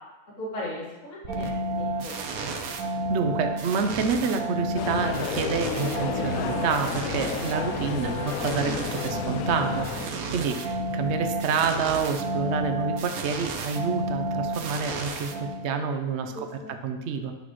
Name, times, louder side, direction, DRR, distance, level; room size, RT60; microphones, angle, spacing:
voice 1, 0.4-2.1 8.0-8.2 16.3-16.8, left 1 dB, 55° left, -5 dB, 2.1 m, -37 dB
sound 1, 1.2-15.9, right 2 dB, 75° right, 1.2 m, -31 dB
voice 2, 3.1-15.3 15.6-17.3, right 5 dB, 55° right, 7 dB, 0.9 m, -28 dB
sound 2, 4.8-10.1, left 8 dB, 75° left, 1.0 m, -32 dB
9.9 x 6.2 x 3.1 m, 1.1 s
omnidirectional pair, 1.5 m